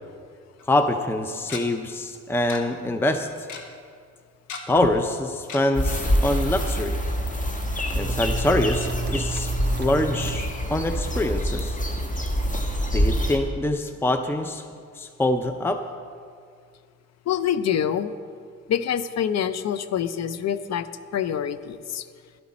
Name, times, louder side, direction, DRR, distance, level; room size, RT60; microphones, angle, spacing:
Tick-tock, 0.6-0.7 1.5-1.6 2.5-2.6 2.9-3.0 3.2-3.6 4.5-4.9 5.5-5.6 6.0-6.1 6.4-6.5, left 5 dB, 80° left, 1.3 m, -34 dB
voice 1, 0.7-3.3 4.7-7.0 8.0-9.5 9.8-11.8 12.9-14.6 15.0-15.8, left 1 dB, 10° left, 7 dB, 0.6 m, -25 dB
sound 1, 5.7-13.4, equal, 25° left, 1.5 m, -26 dB
sound 2, 6.9-7.5 7.9-10.4, right 6 dB, 35° right, 0.4 m, -33 dB
voice 2, 17.3-18.2 18.7-20.9 21.1-22.1, left 9 dB, 60° left, 13 dB, 0.6 m, -26 dB
12.0 x 11.5 x 4.3 m, 2.1 s
cardioid pair, 90°, 30 cm